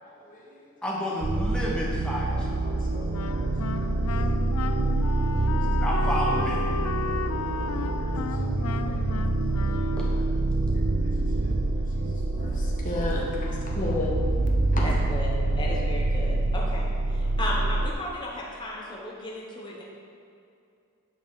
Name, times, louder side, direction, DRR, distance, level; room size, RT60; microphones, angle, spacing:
voice 1, 0.0-0.7 1.8-1.9 2.3-4.1 5.0-5.8 8.0-9.1 10.7-11.1 11.4-11.8 12.4-14.2 14.7-14.8, left 2 dB, 35° left, -4 dB, 1.3 m, -37 dB
voice 2, 0.8-2.5 5.8-6.6 10.0-10.1, equal, 5° left, -5 dB, 1.2 m, -30 dB
sound 1, 1.2-17.9, right 2 dB, 55° right, 0.6 m, -26 dB
Wind instrument woodwind instrument, 3.1-10.4, left 6 dB, 85° left, 0.4 m, -35 dB
voice 3, 14.8-15.3 15.6-16.9 17.1-19.8, left 1 dB, 20° left, -4 dB, 0.9 m, -34 dB
9.4 x 5.4 x 4.0 m, 2.5 s
head